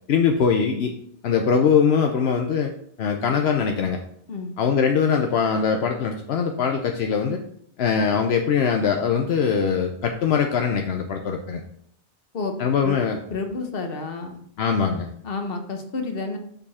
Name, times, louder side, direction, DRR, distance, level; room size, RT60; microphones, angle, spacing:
voice 1, 0.1-0.9 1.2-2.7 3.0-4.0 4.6-7.4 7.8-11.6 12.6-13.2 14.6-15.1, left 6 dB, 80° left, 4 dB, 0.9 m, -22 dB
voice 2, 13.3-14.4 15.2-16.4, left 3 dB, 65° left, 5 dB, 1.2 m, -30 dB
6.9 x 5.3 x 4.2 m, 0.68 s
omnidirectional pair, 1.0 m